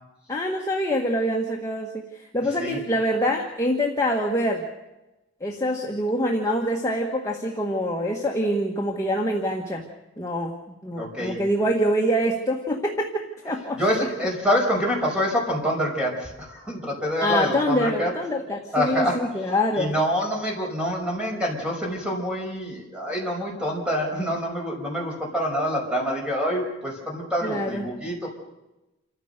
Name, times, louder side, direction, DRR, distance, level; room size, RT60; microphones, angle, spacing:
voice 1, 0.3-4.7 5.4-9.9 10.2-10.5 10.8-14.1 17.2-19.9 27.4-27.9, equal, 15° left, -1 dB, 1.6 m, -25 dB
voice 2, 11.0-11.4 13.8-18.1 18.7-19.2 19.7-28.3, equal, 5° right, -1 dB, 5.5 m, -26 dB
28.0 x 14.5 x 6.7 m, 1.0 s
head